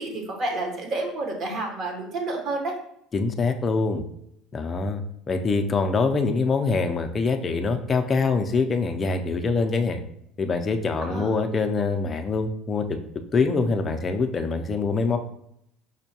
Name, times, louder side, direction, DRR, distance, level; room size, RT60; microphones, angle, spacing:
voice 1, 0.0-2.7 11.0-11.3, right 2 dB, 45° right, 1 dB, 0.9 m, -30 dB
voice 2, 3.1-4.0 4.5-5.0 5.3-10.0 10.4-13.0 13.3-15.2, left 4 dB, 25° left, 5 dB, 0.3 m, -24 dB
5.2 x 2.1 x 2.8 m, 0.73 s
cardioid pair, 130°, 0 cm